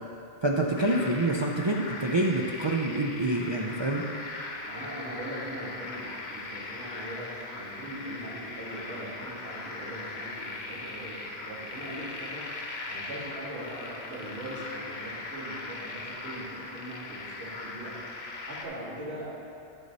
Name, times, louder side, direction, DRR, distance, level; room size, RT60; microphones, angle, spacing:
voice 1, 0.4-4.1, right 2 dB, 40° right, -1 dB, 0.4 m, -27 dB
sound 1, 0.8-18.6, left 3 dB, 70° left, 1.1 m, -39 dB
voice 2, 4.6-19.3, right 1 dB, 85° right, -9 dB, 2.7 m, -41 dB
9.9 x 7.0 x 4.0 m, 2.6 s
omnidirectional pair, 1.1 m